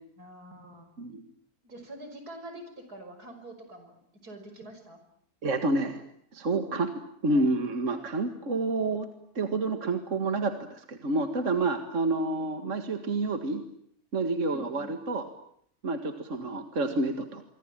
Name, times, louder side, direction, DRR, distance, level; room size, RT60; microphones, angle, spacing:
voice 1, 0.2-0.9 1.6-5.0 7.3-7.4 14.5-15.0, right 1 dB, 85° right, 7 dB, 6.3 m, -46 dB
voice 2, 5.4-6.0 6.3-6.9 7.2-9.1 9.4-13.6 14.1-15.3 15.8-17.4, right 2 dB, 55° right, 7 dB, 2.2 m, -29 dB
27.0 x 24.5 x 9.0 m, 0.69 s
omnidirectional pair, 1.6 m